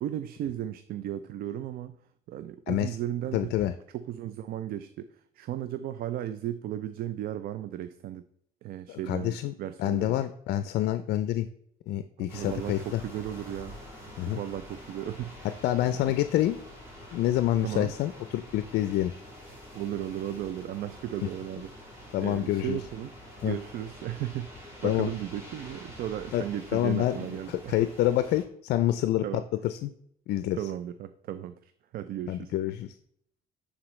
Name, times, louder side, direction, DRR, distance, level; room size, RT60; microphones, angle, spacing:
voice 1, 0.0-1.9 2.3-3.5 3.9-5.1 5.4-8.2 8.6-10.2 12.2-13.8 14.3-15.3 16.0-16.1 17.6-17.9 19.7-21.7 22.2-23.1 23.4-27.7 29.2-29.5 30.5-32.5, right 11 dB, 60° right, 12 dB, 0.4 m, -35 dB
voice 2, 2.7-3.0 3.3-3.7 8.9-9.5 9.8-11.5 11.9-13.0 14.2-14.4 15.6-16.6 17.1-19.1 22.1-22.8 23.4-23.6 24.8-25.1 26.3-26.4 26.7-29.9 30.3-30.6 32.3-32.9, left 13 dB, 70° left, 11 dB, 0.4 m, -27 dB
sound 1, 12.3-28.4, left 1 dB, 15° right, 2.7 m, -47 dB
8.9 x 4.0 x 3.1 m, 0.68 s
cardioid pair, 110°, 17 cm